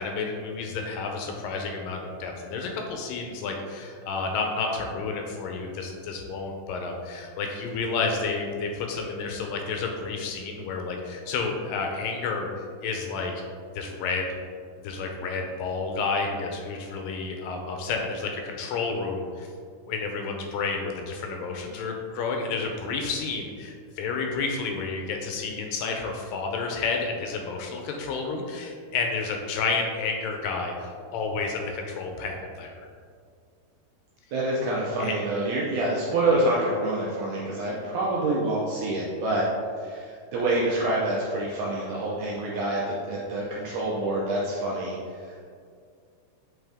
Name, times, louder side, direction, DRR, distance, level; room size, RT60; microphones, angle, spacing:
voice 1, 0.0-12.5 12.8-13.3 13.8-14.3 14.8-19.5 19.9-32.7 35.0-35.2, left 4 dB, 80° left, 2 dB, 2.1 m, -30 dB
voice 2, 34.3-39.5 39.8-45.0, right 2 dB, 75° right, -4 dB, 1.9 m, -27 dB
8.1 x 4.0 x 3.5 m, 2.2 s
omnidirectional pair, 4.3 m